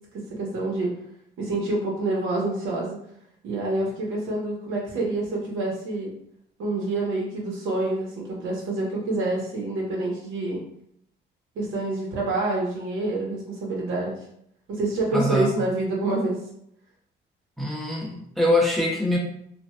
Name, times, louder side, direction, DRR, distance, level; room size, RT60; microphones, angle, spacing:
voice 1, 0.3-0.9 1.4-3.0 3.4-6.1 6.6-10.6 11.5-14.1 14.7-16.3, right 2 dB, 85° right, -3 dB, 1.0 m, -27 dB
voice 2, 15.1-15.5 17.6-19.2, left 1 dB, ahead, -2 dB, 0.6 m, -23 dB
3.1 x 2.5 x 2.3 m, 0.71 s
cardioid pair, 90°, 20 cm